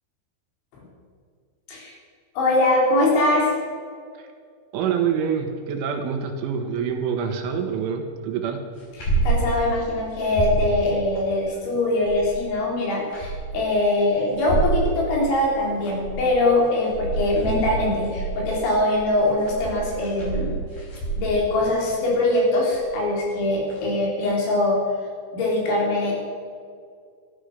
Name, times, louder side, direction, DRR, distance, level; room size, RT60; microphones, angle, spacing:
voice 1, 2.4-3.5 9.0-20.6 21.2-24.8 25.3-26.1, left 2 dB, 75° left, -2 dB, 5.9 m, -22 dB
voice 2, 4.7-8.6, right 7 dB, 85° right, 4 dB, 4.0 m, -26 dB
sound 1, 8.8-9.4 9.7-9.8 10.1-10.7 11.8-12.4 12.9-13.6 14.3-14.8 15.6-16.3 16.7-21.5 22.7-23.0 23.7-23.8, right 4 dB, 45° left, 6.1 m, -27 dB
13.5 x 13.0 x 6.6 m, 2.1 s
omnidirectional pair, 5.5 m